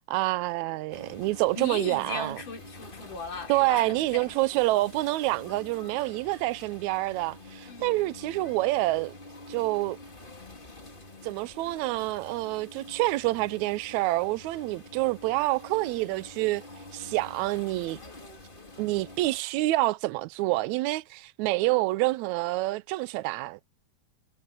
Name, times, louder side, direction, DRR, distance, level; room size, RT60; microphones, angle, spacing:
voice 1, 0.1-2.4 3.5-9.1 9.5-10.0 11.2-16.6 16.9-18.0 18.8-23.7, right 19 dB, 80° right, 1.7 m, -27 dB
sound 1, 0.9-19.4, left 2 dB, 15° left, 2.6 m, -47 dB
voice 2, 1.5-4.4 7.7-8.0, left 4 dB, 65° left, 6.5 m, -38 dB
omnidirectional pair, 3.9 m